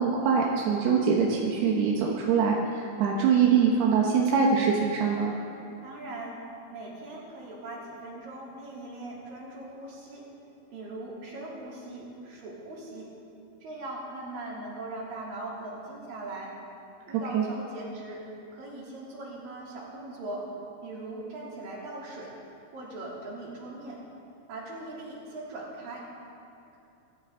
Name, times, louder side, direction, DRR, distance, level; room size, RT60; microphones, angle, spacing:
voice 1, 0.0-5.3 17.3-17.5, right 6 dB, 85° right, -2 dB, 3.2 m, -23 dB
voice 2, 5.8-6.4 6.7-10.2 10.7-13.1 13.6-16.5 17.1-18.2 18.5-20.4 20.8-22.3 22.7-24.0 24.5-26.0, right 2 dB, 60° right, -4 dB, 4.6 m, -40 dB
24.5 x 14.0 x 3.9 m, 2.8 s
omnidirectional pair, 4.5 m